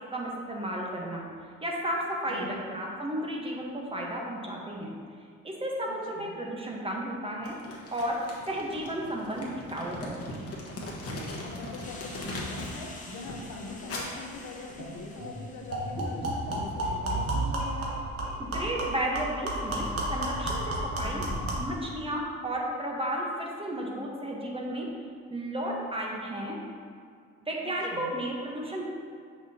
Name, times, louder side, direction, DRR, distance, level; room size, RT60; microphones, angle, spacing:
voice 1, 0.1-1.3 1.6-4.9 5.4-7.5 7.9-8.2 8.5-10.5 18.4-21.2 21.6-24.9 25.3-26.6 27.4-28.9, right 1 dB, 20° right, -2 dB, 1.1 m, -33 dB
voice 2, 2.3-2.6 5.9-6.3 11.4-18.0 21.0-21.5 27.6-28.1, left 3 dB, 80° left, 1 dB, 0.9 m, -42 dB
Crumpling crinkling, 7.4-12.8 13.1-15.1, left 1 dB, 50° left, 1.3 m, -40 dB
sound 1, 11.8-19.2, left 2 dB, 25° left, 1.0 m, -49 dB
sound 2, 14.8-14.9 15.2-15.3 15.7-21.7, right 1 dB, 50° right, 1.4 m, -31 dB
6.0 x 5.8 x 2.8 m, 2.2 s
cardioid pair, 90°, 30 cm